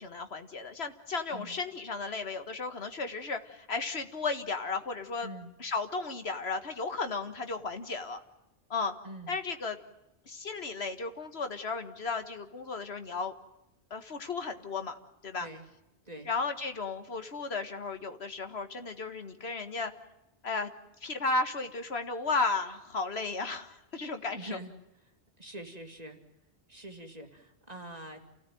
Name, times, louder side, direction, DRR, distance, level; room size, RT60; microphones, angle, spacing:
voice 1, 0.0-5.3 5.6-8.2 8.7-8.9 9.3-9.8 10.3-13.3 13.9-15.0 15.2-15.5 16.3-19.9 20.4-20.7 21.0-24.6, left 4 dB, 70° left, 8 dB, 1.8 m, -34 dB
voice 2, 5.2-5.5 9.0-9.4 15.4-15.7 16.0-16.3 24.4-24.7 25.4-26.2 26.7-28.2, right 1 dB, 35° right, 4 dB, 2.7 m, -44 dB
29.0 x 16.5 x 9.2 m, 0.92 s
omnidirectional pair, 1.1 m